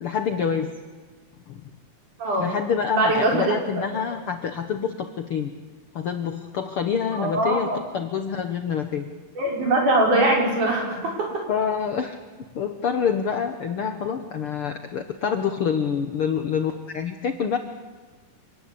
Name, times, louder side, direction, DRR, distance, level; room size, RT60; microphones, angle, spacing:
voice 1, 0.0-0.8 1.5-1.7 2.4-5.5 5.9-9.1 11.5-12.2 12.5-17.6, left 7 dB, 65° left, 7 dB, 1.4 m, -27 dB
voice 2, 2.2-2.5 3.0-3.6 7.2-7.8 9.4-11.3, right 2 dB, 60° right, -1 dB, 6.8 m, -21 dB
27.0 x 19.0 x 8.6 m, 1.4 s
omnidirectional pair, 3.9 m